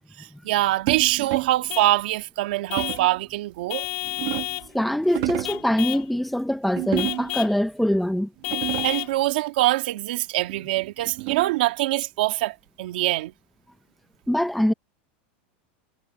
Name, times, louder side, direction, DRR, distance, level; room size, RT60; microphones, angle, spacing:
voice 1, 0.2-3.9 8.8-13.3, right 17 dB, 65° right, 2.2 m, -24 dB
sound 1, 0.9-1.7 2.8-3.2 3.8-4.7 5.0-5.7 6.7-7.5 8.0-8.1 8.4-9.1 10.5-11.7, right 23 dB, 45° right, 2.2 m, -31 dB
Vehicle horn car horn honking / Truck, 1.7-2.0 2.7-3.1 3.7-4.7 5.4-6.1 7.0-7.6 8.4-9.2, left 19 dB, 40° left, 1.7 m, -31 dB
voice 2, 4.7-8.3 14.3-14.7, equal, ahead, 0.9 m, -23 dB
supercardioid pair, 175°, 6 cm